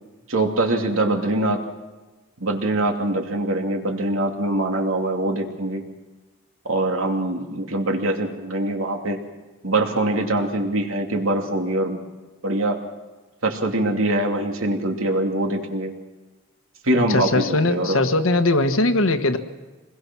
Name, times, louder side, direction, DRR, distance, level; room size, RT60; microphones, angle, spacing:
voice 1, 0.3-1.6 2.4-5.8 6.6-9.2 9.6-12.0 12.4-12.8 13.4-15.9 16.8-18.0, right 1 dB, 80° right, 3 dB, 2.7 m, -23 dB
voice 2, 17.1-19.4, left 2 dB, 80° left, 8 dB, 1.5 m, -20 dB
26.0 x 21.0 x 6.2 m, 1.2 s
head